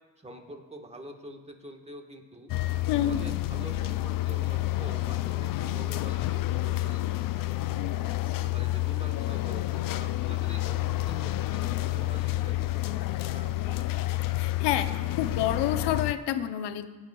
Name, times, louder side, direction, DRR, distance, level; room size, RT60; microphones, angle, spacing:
voice 1, 0.2-2.5 2.9-7.7 8.3-13.9, right 1 dB, 15° right, 4 dB, 1.5 m, -46 dB
sound 1, 2.5-16.1, left 15 dB, 50° left, 0.5 m, -29 dB
voice 2, 2.9-3.2 14.4-16.9, left 11 dB, 75° left, 10 dB, 0.8 m, -28 dB
16.5 x 9.5 x 2.4 m, 1.3 s
supercardioid pair, 75°, 43 cm